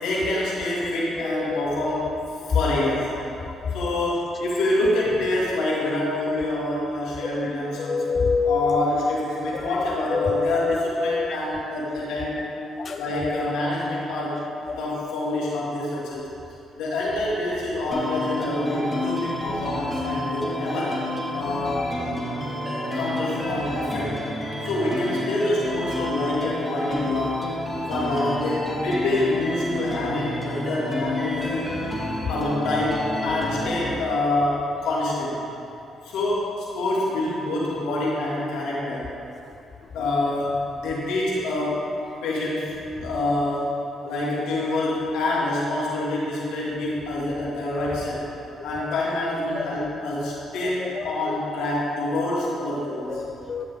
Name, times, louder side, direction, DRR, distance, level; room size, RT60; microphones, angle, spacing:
voice 1, 0.0-2.1 2.5-3.1 3.7-8.0 8.4-12.4 13.0-14.4 14.7-16.3 16.8-20.9 21.3-21.8 22.9-24.2 24.6-27.4 27.9-31.7 32.3-35.4 36.0-39.1 39.9-41.8 42.2-43.7 44.0-48.2 48.6-53.2, left 2 dB, 80° left, -6 dB, 2.3 m, -26 dB
voice 2, 7.9-8.8 10.1-10.8 11.0-11.4 12.8-13.0 13.2-13.3 14.7-14.8 49.6-49.7 53.1-53.6, left 5 dB, 45° left, 6 dB, 0.4 m, -25 dB
sound 1, 17.9-33.9, left 1 dB, 15° left, 2.1 m, -29 dB
13.0 x 6.7 x 3.6 m, 2.8 s
supercardioid pair, 60°, 0 cm